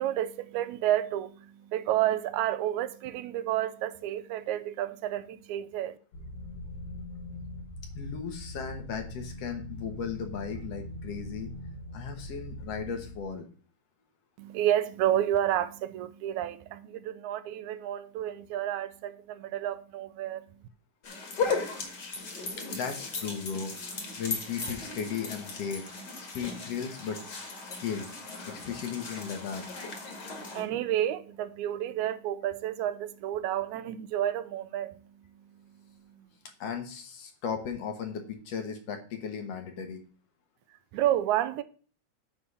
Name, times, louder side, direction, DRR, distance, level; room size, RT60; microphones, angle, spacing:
voice 1, 0.0-6.0 14.4-20.6 30.2-36.3 40.9-41.6, right 12 dB, 85° right, 2.0 m, -31 dB
sound 1, 6.1-13.2, left 1 dB, 80° left, 2.8 m, -42 dB
voice 2, 8.0-11.5 11.9-13.5 22.6-25.9 26.3-27.4 27.8-28.1 28.4-29.7 36.6-40.0, left 7 dB, 65° left, 2.1 m, -36 dB
sound 2, 21.0-30.6, left 4 dB, 40° left, 2.1 m, -37 dB
9.6 x 3.5 x 6.8 m
omnidirectional pair, 3.4 m